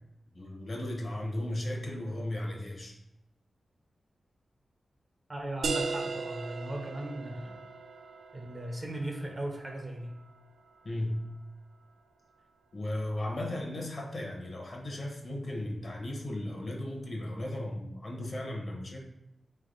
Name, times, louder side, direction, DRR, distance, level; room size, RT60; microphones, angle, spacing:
voice 1, 0.3-2.9 10.8-11.2 12.7-19.0, left 1 dB, 40° left, 0 dB, 0.9 m, -36 dB
voice 2, 5.3-7.6 8.3-10.1, right 1 dB, 25° right, 2 dB, 0.6 m, -37 dB
sound 1, 5.6-11.0, right 4 dB, 90° right, 0.3 m, -38 dB
3.7 x 3.3 x 3.8 m, 0.90 s
wide cardioid pair, 160°, 0 cm